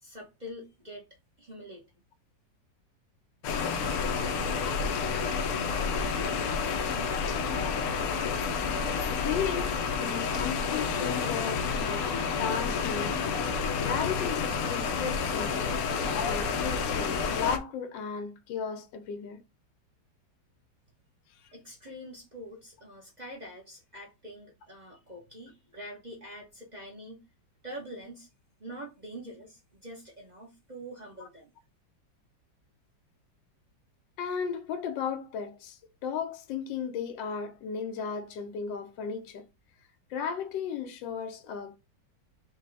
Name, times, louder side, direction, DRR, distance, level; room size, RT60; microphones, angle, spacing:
voice 1, 0.0-1.0 1.4-1.8 21.5-27.2 27.6-28.3 28.6-31.5, equal, 35° right, 0.7 m, -45 dB
sound 1, 3.4-17.6, left 5 dB, 70° left, 0.9 m, -29 dB
voice 2, 9.2-13.2 13.8-15.6 16.2-19.4 34.2-39.5 40.1-41.8, left 7 dB, 90° left, 1.3 m, -35 dB
4.8 x 2.2 x 3.3 m
omnidirectional pair, 1.9 m